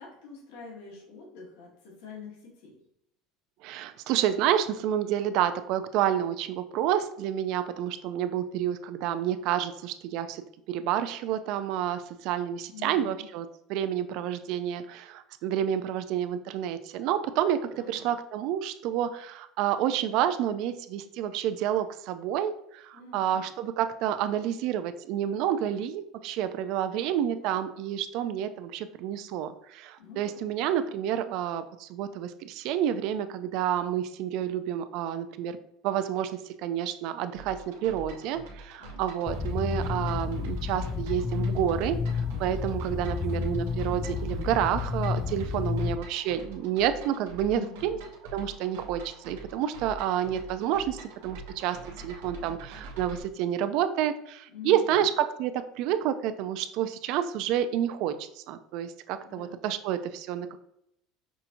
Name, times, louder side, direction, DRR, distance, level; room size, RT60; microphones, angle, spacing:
voice 1, 0.0-2.8 12.7-13.3 17.7-18.1 22.9-23.4 30.0-30.5 38.8-39.3 42.9-43.2 47.5-48.0 54.5-55.0 59.2-59.5, left 6 dB, 80° left, -2 dB, 1.3 m, -46 dB
voice 2, 3.6-35.6 35.8-48.0 48.3-60.6, right 10 dB, 65° right, 11 dB, 0.3 m, -29 dB
sound 1, 37.3-53.2, right 2 dB, 90° right, 0.7 m, -45 dB
sound 2, 39.3-46.0, left 5 dB, 25° left, 0.3 m, -31 dB
5.5 x 2.7 x 2.6 m, 0.77 s
supercardioid pair, 125°, 0 cm